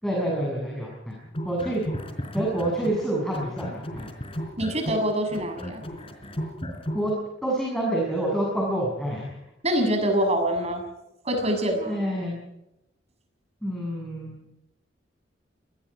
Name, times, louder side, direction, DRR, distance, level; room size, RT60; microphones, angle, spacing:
voice 1, 0.0-1.1 1.4-1.8 2.3-4.1 6.9-7.1 7.4-9.2 11.9-12.4 13.6-14.4, right 1 dB, ahead, -3 dB, 6.8 m, -27 dB
sound 1, 1.3-3.1 3.3-7.1, equal, 30° left, 4.1 m, -34 dB
voice 2, 4.6-5.8 9.6-10.8 11.2-12.0, right 1 dB, 35° right, 5 dB, 6.6 m, -25 dB
27.5 x 20.0 x 4.9 m, 0.88 s
head